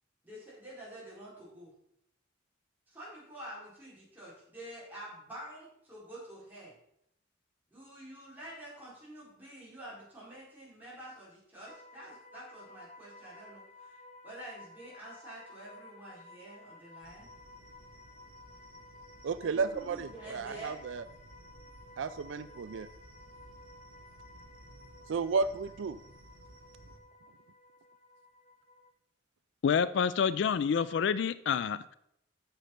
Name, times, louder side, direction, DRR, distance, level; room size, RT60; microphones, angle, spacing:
voice 1, 0.2-1.7 2.9-6.7 7.7-14.0 14.2-17.3 19.4-20.8, right 1 dB, 10° right, -8 dB, 4.6 m, -48 dB
sound 1, 11.7-28.9, left 2 dB, 40° left, 0.8 m, -55 dB
sound 2, 17.0-27.0, right 1 dB, 85° right, 1.5 m, -57 dB
voice 2, 19.2-21.0 22.0-22.9 25.1-26.0, right 4 dB, 70° right, 14 dB, 0.4 m, -33 dB
voice 3, 29.6-32.0, left 6 dB, 60° left, 16 dB, 0.3 m, -28 dB
8.1 x 6.6 x 5.8 m, 0.75 s
head